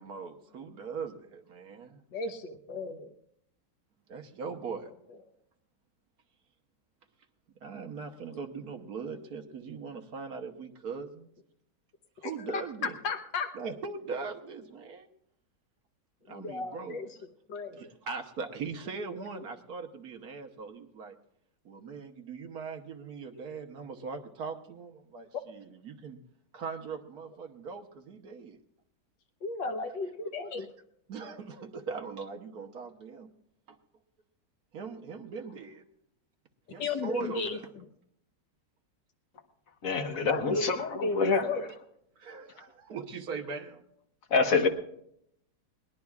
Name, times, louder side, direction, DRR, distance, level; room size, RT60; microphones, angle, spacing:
voice 1, 0.0-2.0 4.1-4.9 7.6-11.3 12.2-13.0 13.5-15.1 16.3-17.0 17.7-21.2 21.6-26.2 26.5-28.6 31.1-33.3 33.7-33.8 34.7-35.8 36.7-37.7 39.9-40.3 40.5-40.6 42.2-43.8, right 5 dB, 60° right, 4 dB, 1.4 m, -40 dB
voice 2, 2.1-3.1 13.0-13.5 16.3-17.1 17.5-17.9 29.4-30.7 36.8-37.6 40.2-41.7, left 4 dB, 80° left, 5 dB, 1.7 m, -34 dB
voice 3, 39.8-41.5 44.3-44.7, left 4 dB, 55° left, 6 dB, 1.3 m, -26 dB
21.0 x 19.5 x 2.4 m, 0.74 s
omnidirectional pair, 1.9 m